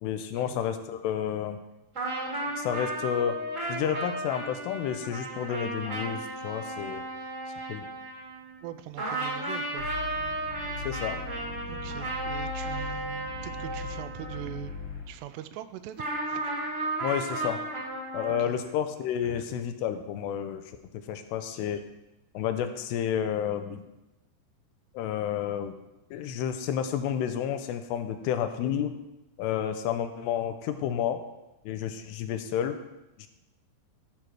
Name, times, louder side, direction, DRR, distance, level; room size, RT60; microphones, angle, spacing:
voice 1, 0.0-1.6 2.6-3.4 3.7-7.1 7.7-7.9 10.8-11.2 17.0-17.6 18.1-21.9 22.3-23.8 24.9-25.7 26.1-29.0 29.4-31.2 31.7-32.8 33.2-33.3, left 9 dB, 85° left, 8 dB, 2.8 m, -30 dB
sound 1, 1.9-8.7 9.0-14.9 16.0-18.4, right 2 dB, 35° right, 1.2 m, -34 dB
voice 2, 8.6-9.9 11.7-14.8 15.1-16.5 18.4-18.6 19.2-19.5, right 12 dB, 85° right, 11 dB, 2.7 m, -42 dB
sound 2, 9.8-15.0, left 5 dB, 65° left, 1.4 m, -39 dB
14.5 x 4.9 x 6.0 m, 0.97 s
omnidirectional pair, 4.9 m